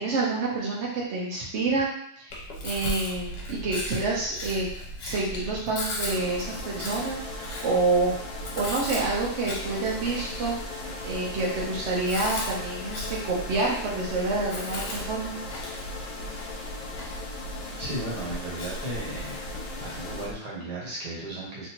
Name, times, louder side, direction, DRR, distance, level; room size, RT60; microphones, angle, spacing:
voice 1, 0.0-1.9 2.2-4.7 5.0-8.1 8.6-10.6 11.0-15.4, right 3 dB, 50° right, -4 dB, 0.9 m, -28 dB
Chewing mastication, 2.3-20.3, equal, 85° left, 1.5 m, -37 dB
sound 1, 6.1-20.3, left 3 dB, 65° left, 1.2 m, -39 dB
voice 2, 17.8-19.4 19.8-21.7, right 1 dB, 70° right, -5 dB, 1.8 m, -35 dB
3.3 x 2.8 x 2.8 m, 0.72 s
omnidirectional pair, 1.9 m